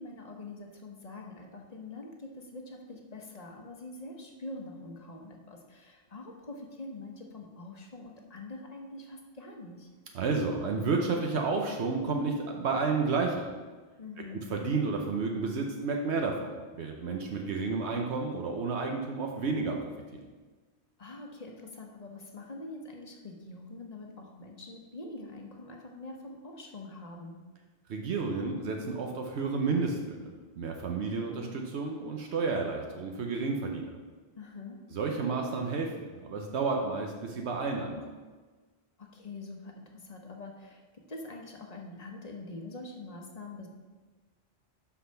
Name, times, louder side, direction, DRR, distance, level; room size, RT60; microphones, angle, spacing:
voice 1, 0.0-9.9 14.0-14.5 21.0-27.4 34.4-34.8 39.0-40.8 41.1-43.7, left 2 dB, 40° left, 1 dB, 1.1 m, -44 dB
voice 2, 10.1-13.5 14.3-19.8 20.1-20.2 27.9-33.9 34.9-35.9 36.2-38.0, right 4 dB, 75° right, 1 dB, 1.1 m, -31 dB
6.2 x 5.7 x 5.6 m, 1.3 s
omnidirectional pair, 1.1 m